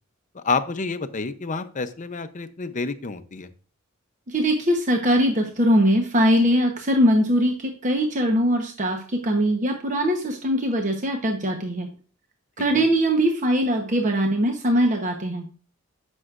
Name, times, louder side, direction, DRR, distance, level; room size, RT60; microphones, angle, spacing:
voice 1, 0.3-3.5 12.8-12.9, left 4 dB, 35° left, 11 dB, 0.6 m, -29 dB
voice 2, 4.3-11.9 12.6-15.5, equal, 35° right, 3 dB, 1.0 m, -21 dB
12.5 x 6.3 x 2.5 m, 0.41 s
head